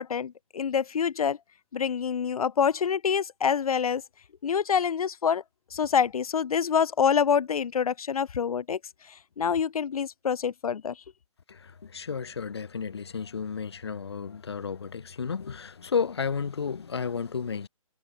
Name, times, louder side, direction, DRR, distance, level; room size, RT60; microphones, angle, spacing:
voice 1, 0.0-1.4 1.7-4.0 4.4-5.4 5.7-8.8 9.4-10.9, left 7 dB, 90° left, 0.5 m, -26 dB
voice 2, 11.5-17.7, left 6 dB, 45° left, 0.7 m, -32 dB
hypercardioid pair, 175°, 18 cm